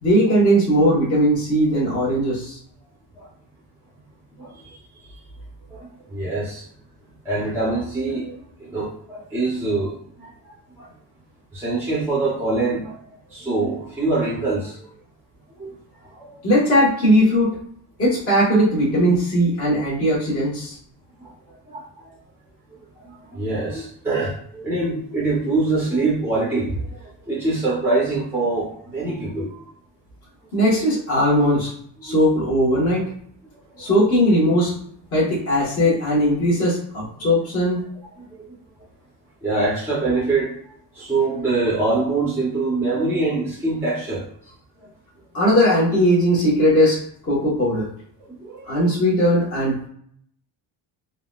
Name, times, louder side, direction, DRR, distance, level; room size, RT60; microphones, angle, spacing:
voice 1, 0.0-2.6 16.4-17.5 18.0-20.8 30.5-31.7 32.0-33.1 33.8-34.7 35.1-37.8 45.3-47.9 48.7-49.9, equal, 30° left, -9 dB, 1.3 m, -19 dB
voice 2, 4.4-4.7 5.1-5.2 5.7-6.7 7.2-8.3 8.6-10.9 11.5-13.0 13.3-14.9 15.5-15.7 16.1-16.4 21.2-22.1 23.0-29.7 32.0-32.2 33.7-33.9 37.2-37.3 38.4-38.5 39.4-40.5 40.9-44.3 48.2-48.8, right 3 dB, 5° right, -6 dB, 0.7 m, -25 dB
3.8 x 2.1 x 2.4 m, 0.65 s
cardioid pair, 150°, 45 cm